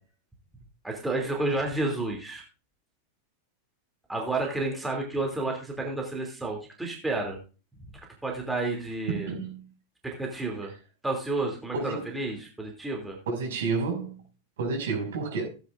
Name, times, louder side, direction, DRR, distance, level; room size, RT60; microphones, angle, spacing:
voice 1, 0.8-2.4 4.1-7.4 8.2-9.3 10.0-10.7 11.0-13.2, right 2 dB, 5° right, 2.9 m, -30 dB
voice 2, 9.1-9.6 11.7-12.1 13.3-14.2 14.6-15.5, right 4 dB, 60° right, 5.9 m, -30 dB
17.0 x 9.7 x 2.6 m
figure-of-eight pair, 90°, 0 cm